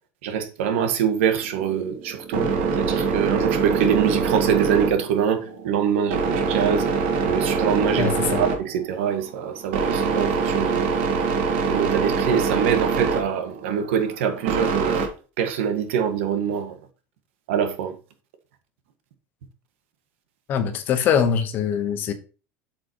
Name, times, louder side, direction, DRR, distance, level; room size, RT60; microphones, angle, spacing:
voice 1, 0.2-6.9 7.2-11.0 11.6-15.1 15.4-16.8 17.5-18.0, right 8 dB, 85° right, 1.6 m, -24 dB
sound 1, 1.4-15.1, right 5 dB, 60° right, 1.9 m, -25 dB
voice 2, 8.0-8.4 20.5-22.1, left 7 dB, 30° left, 1.0 m, -23 dB
7.5 x 7.3 x 3.0 m
cardioid pair, 180°, 7 cm